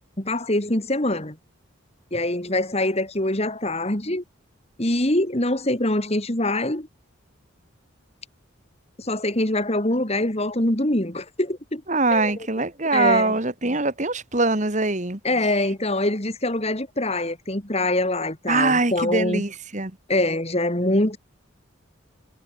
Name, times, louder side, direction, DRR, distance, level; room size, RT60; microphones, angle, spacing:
voice 1, 0.2-1.4 2.1-4.2 4.8-6.9 9.0-11.8 12.1-12.3 12.9-13.4 15.2-19.4 20.1-21.2, left 1 dB, 30° left, 2.7 m, -24 dB
voice 2, 11.9-15.2 18.5-20.0, right 3 dB, 35° right, 2.1 m, -22 dB
head